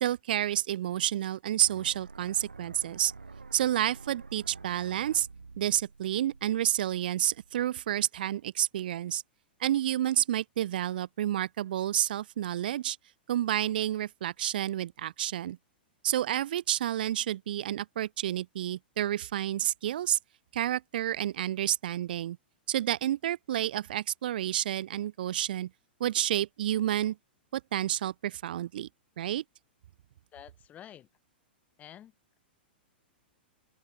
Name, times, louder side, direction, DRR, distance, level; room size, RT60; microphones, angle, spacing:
voice 1, 0.0-3.1 3.5-5.3 5.6-9.2 9.6-13.0 13.3-15.6 16.0-20.2 20.5-22.4 22.7-25.7 26.0-27.2 27.5-28.9 29.2-29.4, right 12 dB, 60° right, 1.1 m, -30 dB
sound 1, 1.6-7.6, right 4 dB, 85° right, 2.4 m, -48 dB
voice 2, 30.3-31.1 31.8-32.4, left 11 dB, 25° left, 3.7 m, -50 dB
open air
figure-of-eight pair, 105°, 6 cm